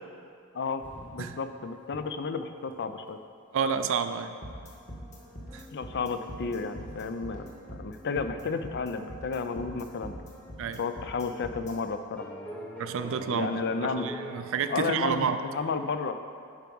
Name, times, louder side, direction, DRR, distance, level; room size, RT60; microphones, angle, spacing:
sound 1, 0.8-1.5 1.8-2.0 2.3-2.4 2.7-3.0 4.0-4.1 4.4-10.8 11.4-11.5 12.1-15.0, equal, 5° left, 1.0 m, -46 dB
voice 1, 1.1-3.2 5.7-7.4 7.7-10.1 10.8-12.3 13.3-14.1 14.7-16.1, left 4 dB, 50° left, 9 dB, 0.5 m, -32 dB
voice 2, 3.5-4.3 5.5-5.7 10.6-10.8 12.8-15.4, right 6 dB, 60° right, 9 dB, 0.4 m, -30 dB
sound 2, 4.4-11.7, equal, 35° left, 1.5 m, -42 dB
10.5 x 4.7 x 5.4 m, 2.3 s
head